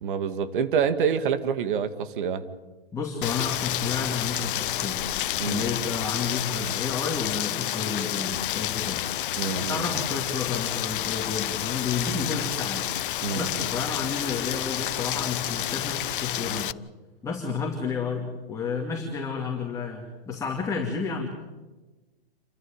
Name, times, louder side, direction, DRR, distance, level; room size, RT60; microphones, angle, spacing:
voice 1, 0.0-2.4 5.4-5.7 9.4-9.8 13.2-13.5, right 7 dB, 55° right, 11 dB, 2.1 m, -27 dB
voice 2, 2.9-5.0 5.4-9.0 9.7-12.9 13.3-16.7 17.2-21.3, left 5 dB, 10° left, 0 dB, 2.6 m, -31 dB
Rain, 3.2-16.7, left 13 dB, 60° left, 0.7 m, -30 dB
28.5 x 14.0 x 8.9 m, 1.2 s
hypercardioid pair, 135°, 30 cm